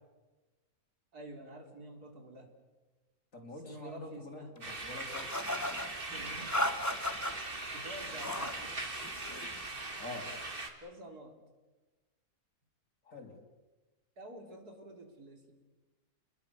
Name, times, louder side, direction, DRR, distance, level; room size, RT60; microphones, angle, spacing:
voice 1, 1.1-2.5 3.6-4.7 6.1-6.5 7.7-8.5 10.8-11.4 14.2-15.5, right 1 dB, 90° right, 4 dB, 4.1 m, -49 dB
voice 2, 3.3-5.3 10.0-10.3 13.1-13.4, left 2 dB, 60° left, 3 dB, 3.6 m, -46 dB
sound 1, 4.6-10.7, right 2 dB, 35° right, 2.5 m, -40 dB
sound 2, 5.1-5.9 6.5-7.3 8.0-8.6 8.9-9.5, left 1 dB, 10° left, 1.3 m, -35 dB
30.0 x 21.5 x 6.9 m, 1.2 s
omnidirectional pair, 1.6 m